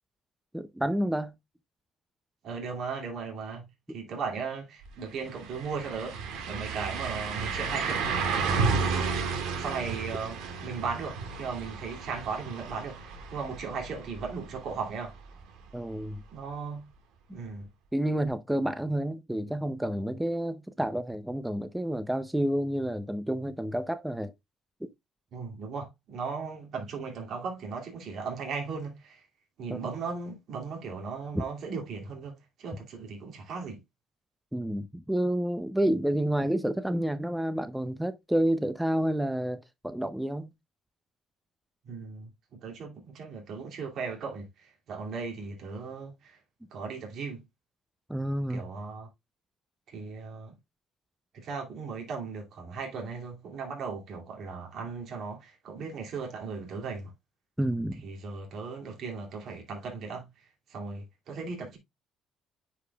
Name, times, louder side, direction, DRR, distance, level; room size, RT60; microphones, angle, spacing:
voice 1, 0.5-1.3 15.7-16.2 17.9-24.3 24.8-24.9 29.7-29.8 31.3-31.4 34.5-40.5 48.1-48.6 57.6-58.0, right 1 dB, 5° right, 0.6 m, -29 dB
voice 2, 2.4-6.2 6.4-8.0 8.4-9.1 9.6-15.1 16.3-16.9 17.3-17.7 25.3-29.3 29.6-33.8 41.8-42.3 42.6-46.4 46.7-47.4 48.5-49.1 49.9-50.5 51.3-57.1 58.0-61.8, right 5 dB, 60° right, 2.5 m, -37 dB
sound 1, 4.8-4.9 5.2-15.0 15.4-15.5 18.3-18.4, right 4 dB, 80° right, 1.7 m, -32 dB
9.8 x 5.0 x 2.3 m
cardioid pair, 105°, 0 cm